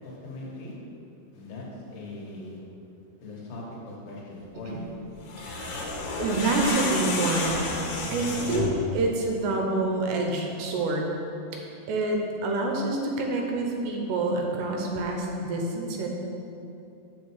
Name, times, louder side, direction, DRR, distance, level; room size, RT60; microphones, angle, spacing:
voice 1, 0.0-0.7 1.3-2.6 3.2-4.9, left 2 dB, 60° left, -4 dB, 2.6 m, -40 dB
sound 1, 5.2-8.8, left 2 dB, 75° left, 3.0 m, -30 dB
voice 2, 5.4-5.8 6.2-7.7 8.1-11.1 11.9-16.1, right 2 dB, 80° right, 1 dB, 2.8 m, -27 dB
6.5 x 6.5 x 4.7 m, 2.8 s
omnidirectional pair, 4.9 m